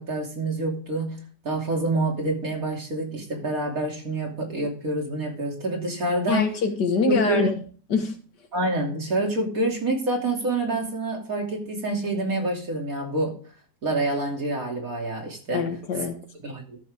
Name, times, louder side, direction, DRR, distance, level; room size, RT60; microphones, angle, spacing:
voice 1, 0.0-6.5 7.1-7.5 8.5-13.4 13.8-15.7 16.4-16.8, right 2 dB, 55° right, 3.3 m, -27 dB
voice 2, 6.3-7.5 7.9-8.2 15.5-16.3, left 4 dB, 80° left, 2.0 m, -24 dB
13.0 x 7.4 x 3.6 m
omnidirectional pair, 1.8 m